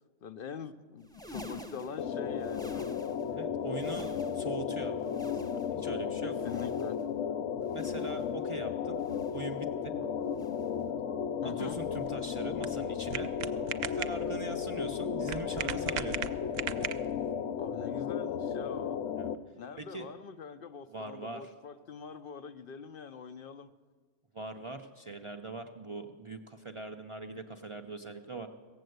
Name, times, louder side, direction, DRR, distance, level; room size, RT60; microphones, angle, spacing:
voice 1, 0.2-2.8 6.2-7.0 10.0-10.1 11.4-11.8 17.6-19.0 19.6-23.7, left 6 dB, 60° left, 10 dB, 0.6 m, -43 dB
sound 1, 1.0-3.4 3.7-4.6 5.0-5.9 6.3-7.2 7.6-8.4 8.9-9.6 10.3-10.8 11.6-12.1 12.9-13.4 14.3-14.6 15.6-15.8 16.9-17.0, left 2 dB, 5° left, 0.8 m, -49 dB
sound 2, 2.0-19.4, left 7 dB, 85° left, 0.9 m, -34 dB
voice 2, 3.3-5.0 5.3-6.3 7.7-9.0 9.3-9.9 10.9-11.0 11.6-13.3 13.9-16.3 19.2-19.3 19.8-20.1 20.9-21.5 24.3-28.5, right 3 dB, 40° right, 4 dB, 0.5 m, -42 dB
sound 3, 11.7-17.3, right 9 dB, 65° right, 0.8 m, -39 dB
17.0 x 7.6 x 7.8 m, 1.5 s
omnidirectional pair, 1.2 m